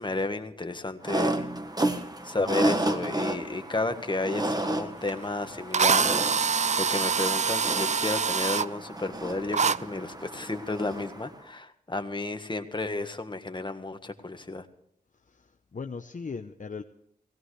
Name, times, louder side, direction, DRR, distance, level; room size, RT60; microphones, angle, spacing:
voice 1, 0.0-1.5 2.2-14.7, left 2 dB, 30° left, 7 dB, 1.5 m, -32 dB
sound 1, 1.0-11.3, right 1 dB, 25° right, 1.3 m, -32 dB
Drill, 5.1-5.2 5.7-8.7 9.5-9.8, right 6 dB, 45° right, 0.4 m, -25 dB
voice 2, 15.3-16.8, left 5 dB, 50° left, 6 dB, 0.8 m, -38 dB
17.0 x 17.0 x 3.3 m, 0.72 s
cardioid pair, 55°, 17 cm